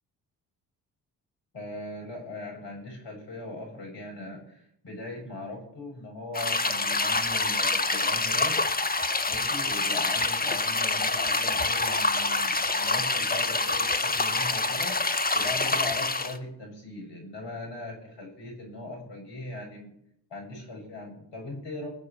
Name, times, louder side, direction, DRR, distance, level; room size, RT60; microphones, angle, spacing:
voice 1, 1.5-8.6 9.3-19.9 20.3-21.9, left 2 dB, 65° left, 1 dB, 7.4 m, -39 dB
sound 1, 6.3-16.4, left 3 dB, 20° left, 1.5 m, -26 dB
20.0 x 7.2 x 6.9 m, 0.73 s
hypercardioid pair, 45°, 46 cm